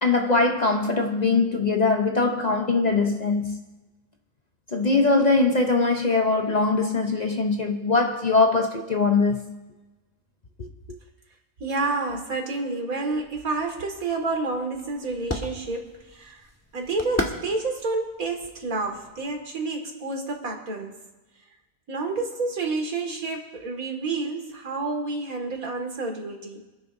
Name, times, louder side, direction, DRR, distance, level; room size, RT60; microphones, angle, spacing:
voice 1, 0.0-3.6 4.7-9.6 10.6-10.7, left 3 dB, 40° left, 0.7 m, -22 dB
voice 2, 11.6-16.4 16.7-21.0 21.9-26.6, right 3 dB, 90° right, 2.5 m, -29 dB
sound 1, 13.1-19.4, left 1 dB, 10° left, 1.4 m, -37 dB
27.0 x 10.5 x 2.6 m
omnidirectional pair, 1.5 m